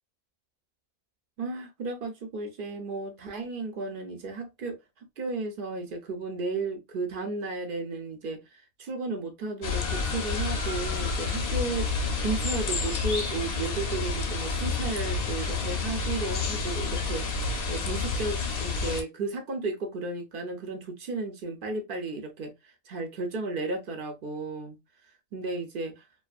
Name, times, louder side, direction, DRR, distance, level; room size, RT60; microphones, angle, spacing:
voice 1, 1.4-4.8 5.2-8.4 8.8-11.9 12.2-17.2 17.7-22.5 22.9-24.8 25.3-26.0, right 3 dB, 60° right, 0.8 m, -33 dB
sound 1, 9.6-19.0, left 4 dB, 70° left, 0.8 m, -29 dB
2.5 x 2.3 x 2.3 m
omnidirectional pair, 1.1 m